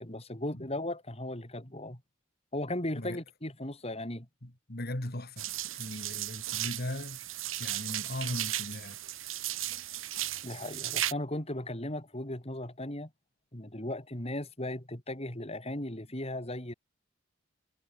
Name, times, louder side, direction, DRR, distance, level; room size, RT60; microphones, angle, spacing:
voice 1, 0.0-2.0 2.5-4.3 10.4-13.1 13.5-16.7, left 1 dB, 30° left, 3.9 m, -37 dB
voice 2, 4.4-5.5 5.7-7.2 7.6-9.0, left 1 dB, 50° left, 3.0 m, -38 dB
sound 1, 5.4-11.1, right 13 dB, 80° right, 3.1 m, -35 dB
head